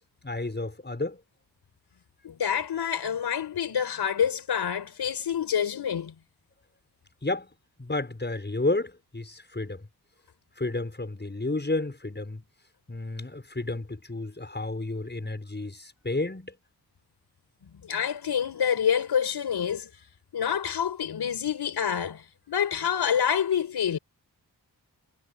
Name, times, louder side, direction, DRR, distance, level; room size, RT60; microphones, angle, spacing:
voice 1, 0.2-1.2 7.2-7.5 7.8-9.8 10.6-12.5 12.9-16.5, left 2 dB, 25° left, 6.3 m, -31 dB
voice 2, 2.2-6.1 17.8-19.9 20.3-24.0, left 8 dB, 90° left, 5.0 m, -27 dB
cardioid pair, 55°, 39 cm